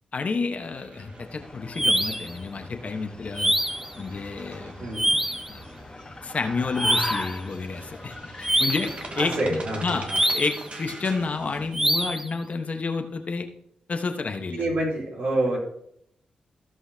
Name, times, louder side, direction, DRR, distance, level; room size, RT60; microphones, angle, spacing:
voice 1, 0.1-3.6 4.0-4.9 5.5-5.6 6.2-13.5 13.9-14.6, left 4 dB, 55° left, 6 dB, 1.2 m, -30 dB
sound 1, 0.6-12.1, right 2 dB, 45° right, 1.9 m, -44 dB
sound 2, 1.0-9.7, left 2 dB, 30° left, 1.3 m, -40 dB
sound 3, 1.8-2.3 3.4-3.9 4.9-5.5 6.8-7.3 8.4-9.0 10.1-10.7 11.7-12.3, right 1 dB, 10° right, 0.7 m, -24 dB
voice 2, 4.8-5.2 9.2-10.2 14.5-15.6, right 1 dB, 70° right, -3 dB, 3.8 m, -27 dB
16.5 x 5.6 x 2.9 m, 0.72 s
supercardioid pair, 45°, 3 cm